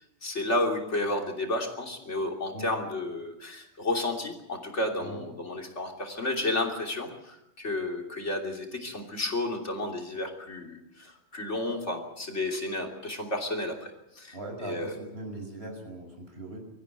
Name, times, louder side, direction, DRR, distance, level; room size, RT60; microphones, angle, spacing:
voice 1, 0.2-14.4 14.6-14.9, left 2 dB, 75° left, 2 dB, 3.5 m, -32 dB
voice 2, 14.3-16.6, right 2 dB, 60° right, 3 dB, 6.2 m, -40 dB
24.0 x 14.5 x 9.2 m, 0.86 s
omnidirectional pair, 1.2 m